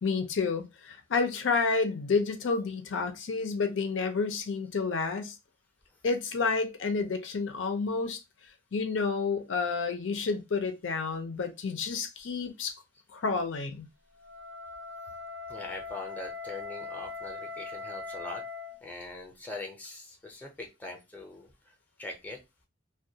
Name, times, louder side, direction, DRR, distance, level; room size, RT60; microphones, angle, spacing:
voice 1, 0.0-5.4 6.0-8.2 8.7-12.8 13.1-13.9, left 4 dB, 85° left, 0.5 m, -30 dB
Wind instrument woodwind instrument, 14.1-18.8, left 4 dB, 80° right, 0.5 m, -41 dB
voice 2, 15.5-18.4 18.8-22.4, left 2 dB, 10° left, 0.6 m, -42 dB
2.3 x 2.2 x 2.7 m
head